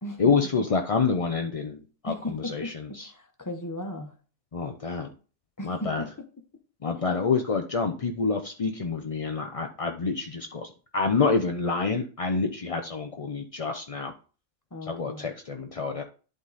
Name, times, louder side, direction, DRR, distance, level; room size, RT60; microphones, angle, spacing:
voice 1, 0.2-3.1 4.5-5.1 5.6-6.0 6.8-14.1 14.9-16.0, left 4 dB, 45° left, 5 dB, 0.4 m, -27 dB
voice 2, 2.0-4.2 5.6-6.3 14.7-15.3, left 1 dB, 15° left, 5 dB, 1.0 m, -36 dB
11.0 x 3.8 x 4.1 m, 0.37 s
omnidirectional pair, 1.4 m